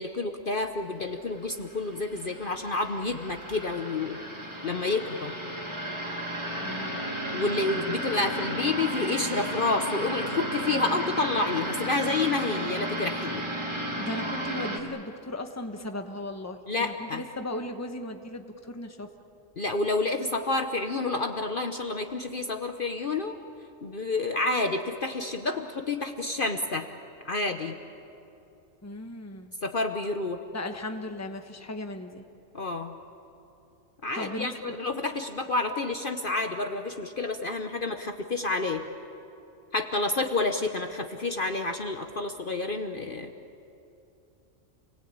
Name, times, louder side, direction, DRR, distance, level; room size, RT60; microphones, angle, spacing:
voice 1, 0.0-4.2 4.6-5.3 7.3-13.5 16.7-17.2 19.6-23.4 23.8-26.9 27.2-27.8 29.6-30.4 32.5-32.9 34.0-34.5 34.8-38.8 39.7-43.3, left 3 dB, 45° left, 4 dB, 1.1 m, -29 dB
sound 1, 1.3-14.8, right 1 dB, 20° right, 2.5 m, -34 dB
voice 2, 6.6-7.0 14.0-19.1 28.8-29.5 30.5-32.2 34.1-34.8, left 1 dB, 15° left, 6 dB, 1.2 m, -37 dB
29.0 x 19.5 x 8.7 m, 2.8 s
omnidirectional pair, 1.3 m